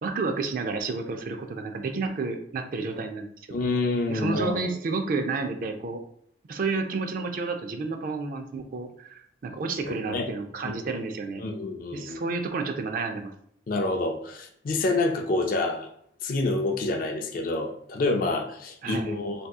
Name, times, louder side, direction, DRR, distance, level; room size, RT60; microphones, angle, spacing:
voice 1, 0.0-3.6 4.1-6.0 6.5-11.4 11.9-13.3 18.8-19.2, right 4 dB, 50° right, 5 dB, 0.4 m, -31 dB
voice 2, 3.5-4.7 9.9-10.3 10.6-10.8 11.4-12.2 13.7-15.9 16.2-19.5, left 2 dB, 50° left, 4 dB, 0.4 m, -28 dB
2.8 x 2.3 x 3.4 m, 0.67 s
head